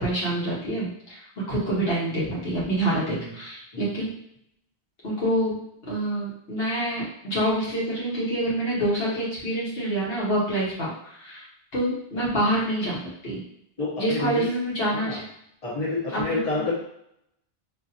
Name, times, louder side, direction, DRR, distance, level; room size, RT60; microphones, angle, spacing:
voice 1, 0.0-4.1 5.0-5.6 5.9-11.4 11.7-13.4 14.0-15.2 16.1-16.7, right 1 dB, 75° left, -7 dB, 1.5 m, -27 dB
voice 2, 13.8-14.4 14.9-15.2 15.6-16.7, left 3 dB, 35° left, -7 dB, 1.4 m, -29 dB
4.1 x 3.0 x 2.7 m, 0.73 s
omnidirectional pair, 1.0 m